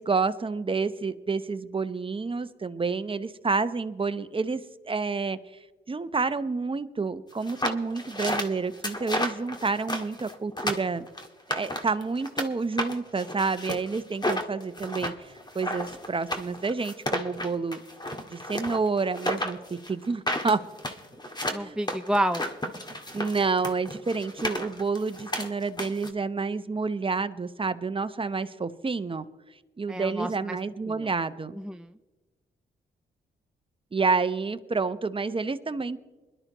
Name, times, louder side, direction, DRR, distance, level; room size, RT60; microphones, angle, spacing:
voice 1, 0.0-5.4 5.9-11.0 11.5-17.8 18.3-20.6 21.5-21.8 23.1-29.2 29.8-31.6 33.9-36.0, right 4 dB, 30° right, 12 dB, 0.8 m, -29 dB
sound 1, 7.4-12.5 12.8-26.1, left 1 dB, 25° left, 1.7 m, -32 dB
voice 2, 21.5-22.5 29.9-30.6 30.9-31.1 31.6-31.9, right 1 dB, 5° right, 9 dB, 0.5 m, -29 dB
21.0 x 12.0 x 3.0 m, 1.2 s
cardioid pair, 60°, 19 cm